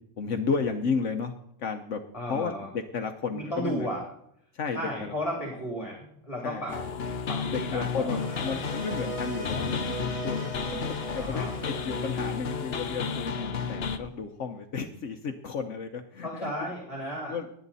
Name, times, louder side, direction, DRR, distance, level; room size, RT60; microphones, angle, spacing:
voice 1, 0.2-1.3 1.6-2.0 2.3-3.9 4.5-5.1 6.4-6.6 7.5-16.5 17.3-17.5, left 5 dB, 75° left, 5 dB, 1.2 m, -33 dB
voice 2, 2.1-2.7 3.3-4.0 4.7-6.7 7.3-8.8 11.2-11.5 16.2-17.5, equal, 25° left, -1 dB, 3.0 m, -34 dB
sound 1, 6.7-14.0, left 5 dB, 55° left, 1.1 m, -32 dB
sound 2, 8.0-13.3, right 4 dB, 10° left, 7.2 m, -41 dB
20.0 x 9.0 x 4.1 m, 0.71 s
omnidirectional pair, 1.3 m